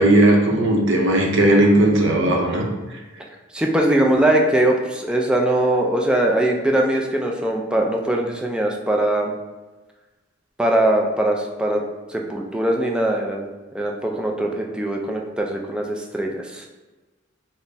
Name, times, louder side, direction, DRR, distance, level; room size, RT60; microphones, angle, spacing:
voice 1, 0.0-2.6, right 1 dB, 65° right, 0 dB, 0.6 m, -16 dB
voice 2, 3.5-9.4 10.6-11.8 12.1-16.6, right 1 dB, 5° right, 0 dB, 0.3 m, -21 dB
3.9 x 2.0 x 3.3 m, 1.2 s
head